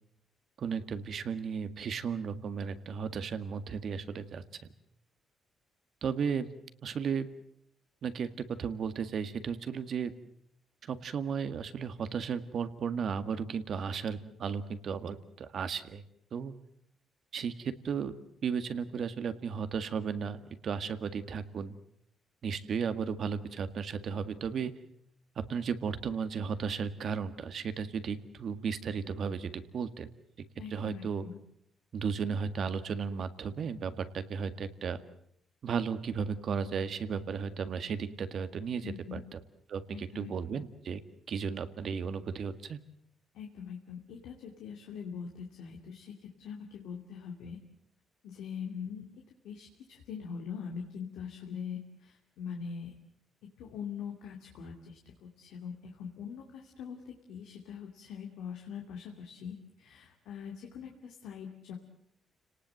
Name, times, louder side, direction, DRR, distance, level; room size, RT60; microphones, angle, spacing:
voice 1, 0.6-4.4 6.0-6.5 6.8-7.3 8.0-10.1 10.9-16.0 16.3-16.5 17.3-18.1 18.4-21.8 22.4-24.7 25.5-30.1 30.7-31.2 31.9-35.0 35.6-39.4 39.7-41.0 41.3-42.8, right 6 dB, 60° right, 11 dB, 1.8 m, -34 dB
voice 2, 30.6-31.4 38.8-39.2 39.9-40.6 43.3-46.1 46.4-47.6 48.2-49.0 49.4-52.9 53.6-61.8, left 7 dB, 85° left, 2 dB, 2.6 m, -43 dB
30.0 x 19.0 x 7.7 m, 0.71 s
cardioid pair, 90°, 0 cm